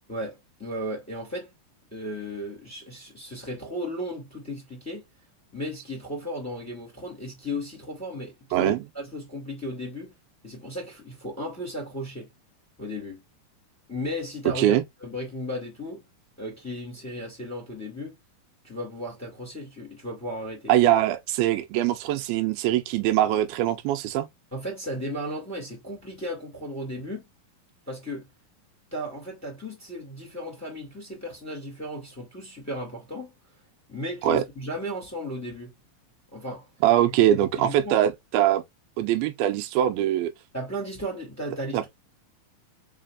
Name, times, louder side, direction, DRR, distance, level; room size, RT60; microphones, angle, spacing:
voice 1, 0.1-1.5 1.9-5.0 5.5-10.1 10.4-12.3 12.8-13.2 13.9-16.1 16.4-18.2 18.6-20.7 24.5-27.3 27.9-28.3 28.9-33.3 33.9-35.7 36.3-36.7 37.3-38.0 40.5-41.9, equal, 5° left, 1.9 m, -35 dB
voice 2, 20.7-24.3 34.2-34.4 36.8-38.6 39.0-40.3 41.7-41.9, right 12 dB, 90° right, 2.6 m, -22 dB
4.8 x 4.2 x 2.4 m
omnidirectional pair, 4.2 m